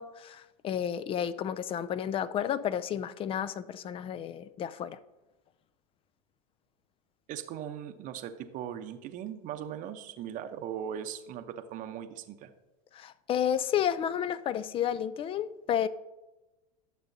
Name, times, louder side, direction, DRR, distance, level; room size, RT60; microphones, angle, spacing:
voice 1, 0.0-5.0 12.9-15.9, left 9 dB, 30° left, 0.4 m, -31 dB
voice 2, 7.3-12.5, right 9 dB, 45° right, 0.8 m, -39 dB
11.5 x 6.7 x 2.7 m
hypercardioid pair, 100°, 19 cm